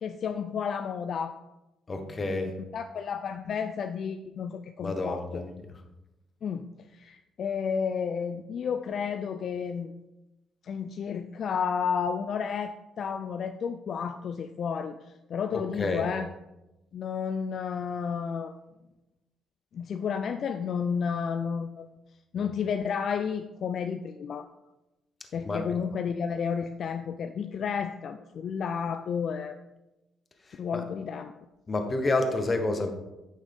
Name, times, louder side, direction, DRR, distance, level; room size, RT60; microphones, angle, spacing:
voice 1, 0.0-1.4 2.7-5.4 6.4-6.7 6.9-9.9 10.6-15.0 15.3-16.3 16.9-18.6 19.7-21.9 22.3-24.5 25.3-29.6 30.6-31.3, left 6 dB, 60° left, 8 dB, 0.4 m, -31 dB
voice 2, 1.9-2.5 4.8-5.5 15.5-16.1 25.4-25.8 30.5-30.8 31.7-32.9, left 2 dB, 30° left, 6 dB, 1.2 m, -29 dB
8.9 x 6.3 x 3.6 m, 0.99 s
cardioid pair, 90°, 0 cm